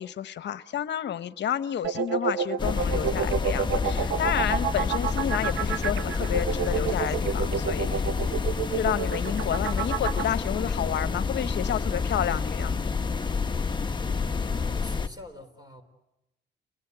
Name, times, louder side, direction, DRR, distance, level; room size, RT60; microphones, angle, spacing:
voice 1, 0.0-8.0 8.7-12.8, left 10 dB, 60° left, 13 dB, 1.1 m, -30 dB
sound 1, 1.8-10.3, right 8 dB, 70° right, 1.0 m, -29 dB
sound 2, 2.6-15.1, left 5 dB, 25° left, 1.1 m, -29 dB
Water tap faucet / Sink (filling or washing), 4.7-13.7 14.0-14.2, left 2 dB, ahead, 5.1 m, -58 dB
voice 2, 14.5-15.8, left 1 dB, 20° right, 8 dB, 4.0 m, -44 dB
29.5 x 20.5 x 8.2 m, 0.91 s
cardioid pair, 90°, 20 cm